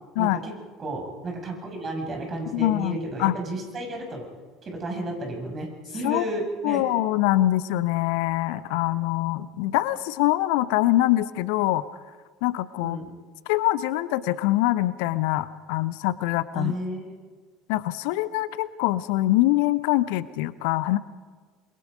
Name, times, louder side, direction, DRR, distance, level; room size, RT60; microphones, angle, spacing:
voice 1, 0.2-0.5 0.8-4.3 4.6-6.8 12.8-13.1 16.5-17.1, right 1 dB, 30° right, 2 dB, 6.5 m, -32 dB
voice 2, 2.5-3.3 6.0-6.3 6.6-11.8 12.4-13.0 13.5-16.7 17.7-21.0, left 16 dB, 60° left, 17 dB, 0.7 m, -24 dB
28.0 x 22.5 x 5.2 m, 1.5 s
figure-of-eight pair, 65°, 0 cm